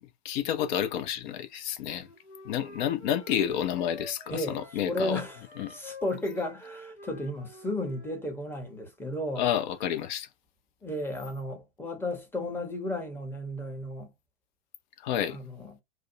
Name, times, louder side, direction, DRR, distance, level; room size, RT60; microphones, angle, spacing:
voice 1, 0.2-2.1 2.4-5.2 5.6-5.7 9.4-10.3 15.0-15.4, left 10 dB, 45° left, 0.6 m, -30 dB
Wind instrument woodwind instrument, 1.9-8.2, left 2 dB, 80° left, 1.0 m, -48 dB
voice 2, 4.3-9.5 10.8-14.1 15.3-15.7, left 1 dB, 5° left, 0.8 m, -34 dB
2.5 x 2.1 x 2.6 m
figure-of-eight pair, 95°, 33 cm